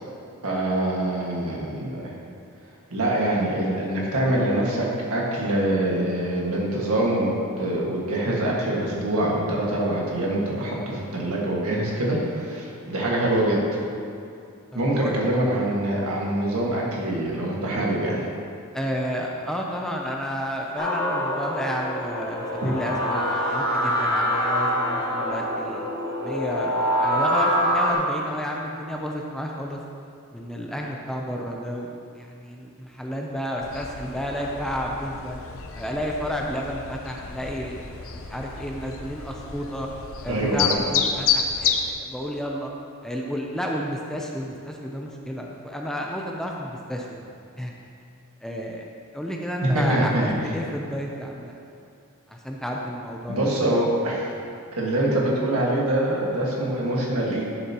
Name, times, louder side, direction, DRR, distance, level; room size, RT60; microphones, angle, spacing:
voice 1, 0.4-2.1 2.9-13.7 14.7-18.3 40.3-40.7 49.6-50.5 53.3-54.3 54.7-57.5, right 1 dB, 70° right, -4 dB, 1.7 m, -24 dB
voice 2, 14.7-15.1 18.7-25.8 26.2-29.8 30.3-35.4 35.8-39.9 40.2-42.7 43.0-47.7 48.4-48.9 49.1-51.6 52.3-53.4, equal, ahead, -1 dB, 0.5 m, -31 dB
sound 1, 20.8-27.9, equal, 20° left, 1.5 m, -25 dB
sound 2, 33.6-41.9, left 6 dB, 65° left, 0.6 m, -30 dB
11.0 x 6.9 x 2.9 m, 2.5 s
head